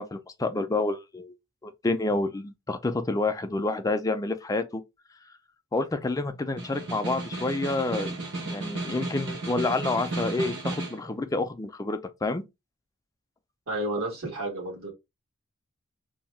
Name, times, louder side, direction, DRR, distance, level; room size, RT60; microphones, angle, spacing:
voice 1, 0.0-1.3 1.6-4.8 5.7-12.4, left 2 dB, 15° left, 0.3 m, -29 dB
Snare drum, 6.4-11.1, right 2 dB, 60° right, 0.9 m, -34 dB
voice 2, 13.7-14.9, right 1 dB, 80° right, 1.4 m, -31 dB
2.7 x 2.2 x 3.1 m
head